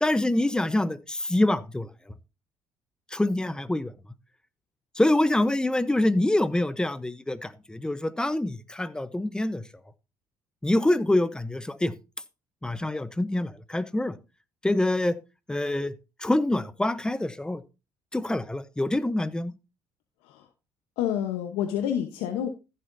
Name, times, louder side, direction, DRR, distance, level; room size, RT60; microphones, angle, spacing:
voice 1, 0.0-1.9 3.1-3.9 5.0-9.6 10.6-11.9 12.6-14.2 14.6-15.2 15.5-15.9 16.2-17.6 18.1-19.5, left 1 dB, 10° left, 0.9 m, -25 dB
voice 2, 21.0-22.5, left 10 dB, 90° left, 1.0 m, -28 dB
14.5 x 7.8 x 2.7 m
supercardioid pair, 90°, 9 cm